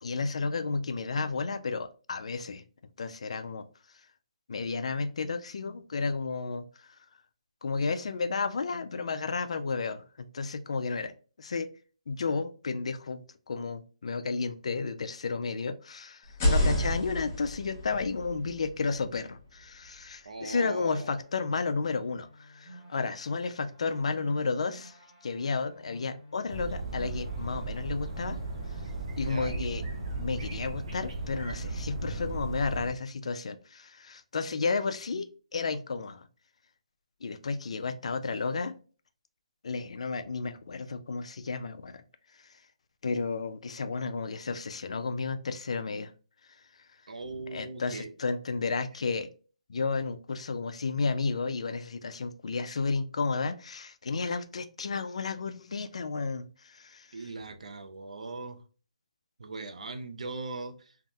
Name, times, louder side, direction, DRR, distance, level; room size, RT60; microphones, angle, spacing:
voice 1, 0.0-2.6 3.0-3.7 4.5-6.9 7.6-11.1 11.4-11.7 12.1-28.4 29.2-29.8 30.2-36.3 37.2-38.7 39.6-42.0 42.4-42.5 43.0-46.1 47.4-49.3 49.7-57.2, left 4 dB, 60° left, 0.3 m, -32 dB
sound 1, 16.2-20.1, left 1 dB, 20° left, 0.7 m, -30 dB
voice 2, 20.2-21.2 29.2-29.6 47.1-48.1 57.1-58.6 59.4-60.7, right 3 dB, 80° right, 0.5 m, -40 dB
sound 2, 21.1-29.1, left 1 dB, 20° right, 0.9 m, -53 dB
sound 3, 26.5-32.9, right 2 dB, 50° right, 0.8 m, -36 dB
3.3 x 2.0 x 2.6 m
hypercardioid pair, 170°, 4 cm